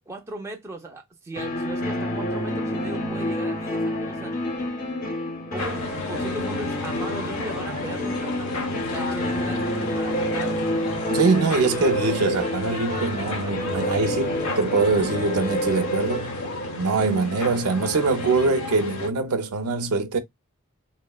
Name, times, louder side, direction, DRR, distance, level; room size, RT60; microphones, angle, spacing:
voice 1, 0.1-4.4 5.5-10.6, right 2 dB, 10° right, 0.4 m, -38 dB
sound 1, 1.4-18.1, left 1 dB, 40° left, 0.6 m, -29 dB
sound 2, 5.6-19.1, left 3 dB, 75° left, 0.6 m, -33 dB
voice 2, 11.1-16.4 16.8-20.2, right 4 dB, 85° right, 0.5 m, -23 dB
2.9 x 2.0 x 2.2 m
head